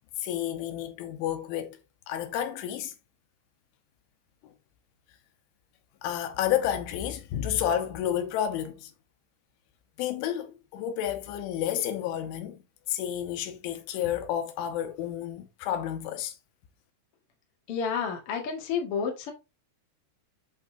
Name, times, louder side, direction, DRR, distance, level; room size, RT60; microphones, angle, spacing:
voice 1, 0.2-1.8 2.1-2.9 4.4-4.5 6.0-8.9 10.0-12.6 12.9-16.3, left 10 dB, 80° left, 3.4 m, -30 dB
voice 2, 17.7-19.3, left 6 dB, 60° left, 1.4 m, -30 dB
8.1 x 6.0 x 2.7 m
omnidirectional pair, 5.4 m